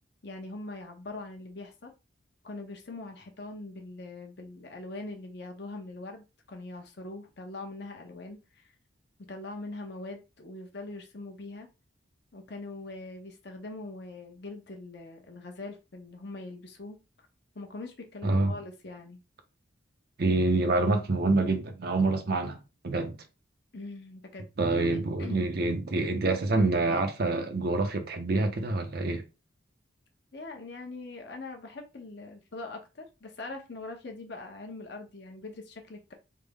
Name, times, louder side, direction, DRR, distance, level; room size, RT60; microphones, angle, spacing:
voice 1, 0.2-1.9 2.4-8.7 9.3-11.7 12.3-17.3 17.5-19.2 23.7-24.5 25.2-25.5 30.3-36.1, left 2 dB, 55° left, 0.8 m, -42 dB
voice 2, 18.2-18.6 20.2-22.6 22.8-23.1 24.6-29.2, right 2 dB, 50° right, 0.6 m, -26 dB
3.5 x 2.1 x 3.4 m
head